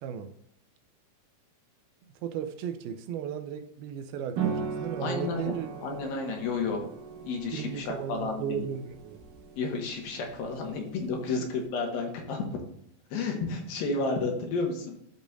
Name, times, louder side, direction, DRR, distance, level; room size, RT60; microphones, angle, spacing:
voice 1, 0.0-0.3 2.2-5.7 7.5-9.2, right 8 dB, 90° right, 8 dB, 2.6 m, -35 dB
sound 1, 4.4-11.7, right 6 dB, 70° right, 2.6 m, -39 dB
voice 2, 5.0-5.5 5.8-6.8 7.2-8.7 9.6-12.6 13.1-15.0, left 4 dB, 75° left, 2 dB, 3.1 m, -31 dB
13.0 x 5.1 x 2.5 m, 0.74 s
omnidirectional pair, 4.4 m